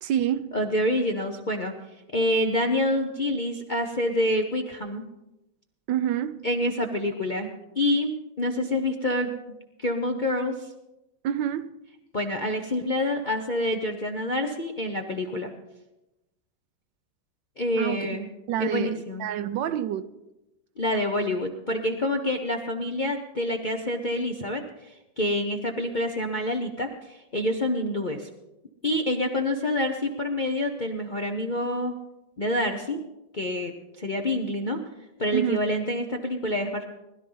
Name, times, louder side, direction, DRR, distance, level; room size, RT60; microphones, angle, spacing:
voice 1, 0.0-0.5 5.9-6.5 11.2-11.7 17.8-18.1 18.5-20.1 35.3-35.6, right 10 dB, 75° right, 1.3 m, -27 dB
voice 2, 0.5-1.7 2.1-5.1 6.4-7.5 7.7-9.3 9.8-10.7 12.1-15.5 17.6-18.3 18.6-19.3 20.8-28.3 28.8-31.9 32.4-33.0 33.3-34.8 35.2-36.9, left 1 dB, 45° left, 0.6 m, -27 dB
20.0 x 12.0 x 3.9 m
omnidirectional pair, 2.1 m